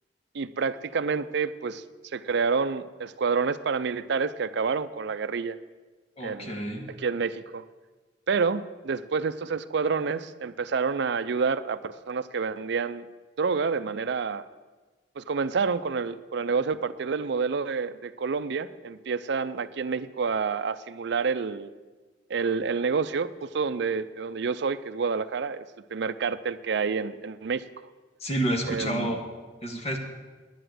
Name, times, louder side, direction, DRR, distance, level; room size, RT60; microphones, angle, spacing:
voice 1, 0.3-1.8 2.1-5.6 6.2-6.6 7.0-7.6 8.3-13.1 13.4-14.4 15.2-21.7 22.3-27.6 28.7-29.1, right 5 dB, 65° right, 14 dB, 0.5 m, -28 dB
voice 2, 6.2-6.9 28.2-29.3 29.6-30.0, right 1 dB, 35° left, 3 dB, 1.8 m, -29 dB
10.0 x 10.0 x 7.8 m, 1.3 s
head